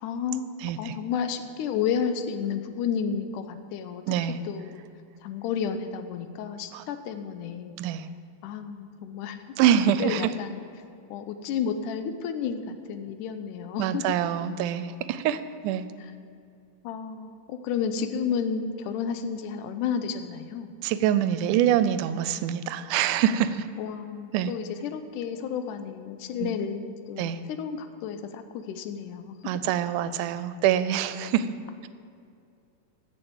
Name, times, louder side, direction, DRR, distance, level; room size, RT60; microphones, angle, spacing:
voice 1, 0.0-4.8 5.2-7.8 8.4-9.6 10.0-10.6 11.1-14.2 16.0-16.1 16.8-20.7 23.8-29.5, left 7 dB, 85° left, 9 dB, 2.2 m, -32 dB
voice 2, 0.6-0.9 4.1-4.4 6.7-6.8 7.8-8.0 9.6-10.2 13.8-15.9 20.8-23.7 24.3-24.5 26.4-26.5 27.2-27.4 29.5-31.5, right 10 dB, 90° right, 13 dB, 2.1 m, -25 dB
9.9 x 7.0 x 7.9 m, 2.5 s
omnidirectional pair, 3.5 m